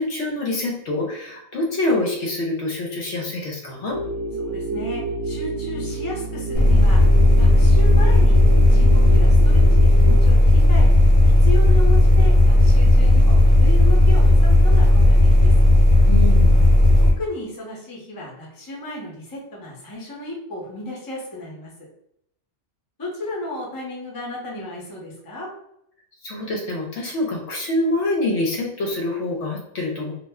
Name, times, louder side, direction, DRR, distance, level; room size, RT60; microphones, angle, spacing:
voice 1, 0.0-4.0 16.1-16.6 26.2-30.1, left 2 dB, 65° left, -1 dB, 0.8 m, -25 dB
sound 1, 3.9-10.2, right 2 dB, 65° right, 0.9 m, -30 dB
voice 2, 4.4-7.0 7.3-8.4 8.7-10.9 11.4-15.5 16.9-21.7 23.0-25.5, left 1 dB, 20° left, -3 dB, 0.6 m, -33 dB
sound 2, 6.5-17.1, left 1 dB, 30° right, 0.8 m, -13 dB
2.4 x 2.1 x 3.5 m, 0.74 s
omnidirectional pair, 1.3 m